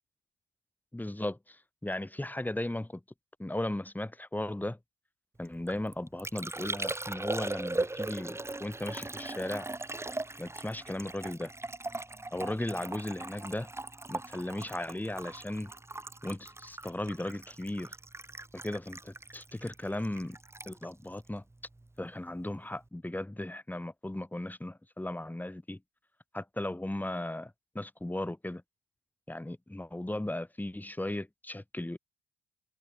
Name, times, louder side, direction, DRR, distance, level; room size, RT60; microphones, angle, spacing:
voice 1, 0.9-3.0 3.4-4.8 5.4-9.7 10.4-11.5 12.3-13.7 14.1-15.7 16.2-17.9 18.5-20.4 20.7-21.4 22.0-25.8 26.3-28.6 29.3-32.0, left 1 dB, 10° left, 5.7 m, -36 dB
Liquid, 5.5-22.1 22.3-22.9, right 2 dB, 15° right, 1.5 m, -39 dB
cardioid pair, 90°, 20 cm